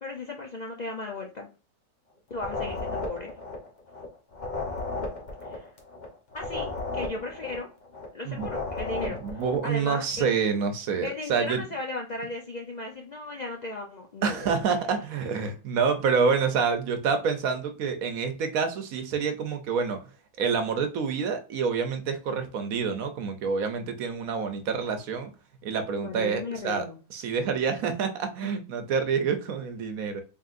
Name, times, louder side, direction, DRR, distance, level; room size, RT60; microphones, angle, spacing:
voice 1, 0.0-1.5 2.3-3.3 5.4-5.7 6.3-7.7 8.1-10.4 11.0-14.6 26.0-27.0, left 2 dB, 70° left, 2 dB, 0.4 m, -36 dB
sound 1, 2.3-4.1 4.3-8.1 8.3-9.7, left 3 dB, 35° left, 0.9 m, -34 dB
voice 2, 9.0-11.6 14.2-20.0 20.4-25.3 25.6-26.8 27.1-30.2, right 5 dB, 70° right, 7 dB, 1.1 m, -27 dB
4.2 x 3.6 x 2.5 m, 0.35 s
omnidirectional pair, 1.6 m